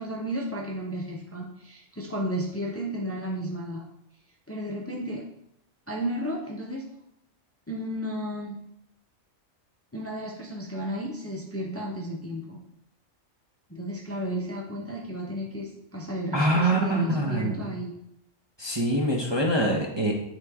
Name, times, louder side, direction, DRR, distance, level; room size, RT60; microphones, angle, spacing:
voice 1, 0.0-3.8 4.5-5.2 5.9-6.8 7.7-8.6 9.9-12.6 13.7-17.9, equal, 15° left, -1 dB, 0.8 m, -33 dB
voice 2, 16.3-17.7 18.6-20.1, right 1 dB, 25° right, -2 dB, 0.8 m, -24 dB
9.7 x 3.8 x 3.6 m, 0.81 s
omnidirectional pair, 1.3 m